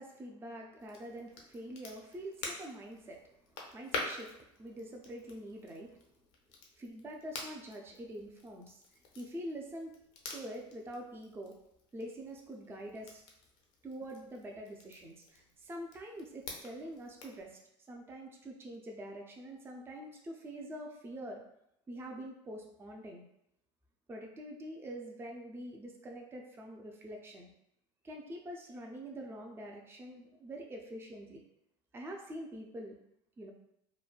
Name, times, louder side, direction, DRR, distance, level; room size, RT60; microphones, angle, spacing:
voice 1, 0.0-3.3 3.7-6.0 6.8-8.8 9.2-10.0 10.3-11.6 11.9-13.2 13.8-17.6 17.9-21.4 21.9-23.2 24.1-27.5 28.0-31.4 31.9-33.0 33.4-33.5, right 1 dB, 15° right, 1 dB, 0.4 m, -45 dB
Crackle, 0.8-17.4, left 3 dB, 70° left, 0.7 m, -48 dB
3.1 x 2.1 x 2.3 m, 0.79 s
hypercardioid pair, 85°, 15 cm